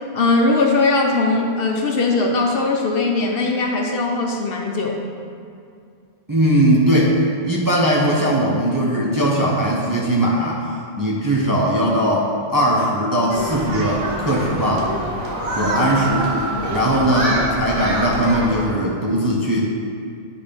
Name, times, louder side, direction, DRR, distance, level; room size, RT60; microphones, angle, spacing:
voice 1, 0.1-5.0 15.6-15.8 16.5-16.9, left 3 dB, 60° left, 1 dB, 0.8 m, -20 dB
voice 2, 6.3-10.7 11.0-14.9 15.5-16.3 16.7-19.7, right 1 dB, 20° right, -4 dB, 0.6 m, -19 dB
Human group actions, 13.3-18.7, right 1 dB, 85° right, 1.3 m, -26 dB
9.0 x 3.4 x 5.1 m, 2.4 s
omnidirectional pair, 1.2 m